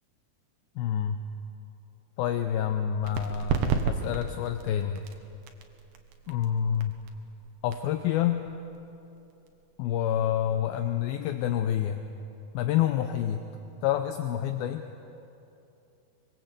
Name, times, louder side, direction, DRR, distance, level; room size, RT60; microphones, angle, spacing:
voice 1, 0.8-1.2 2.2-5.0 6.3-7.0 7.6-8.5 9.8-12.0 12.5-13.4 13.8-14.9, left 10 dB, 75° left, 7 dB, 2.3 m, -28 dB
sound 1, 3.0-10.4, right 6 dB, 70° right, 3.4 m, -34 dB
24.5 x 23.5 x 8.2 m, 2.8 s
omnidirectional pair, 4.9 m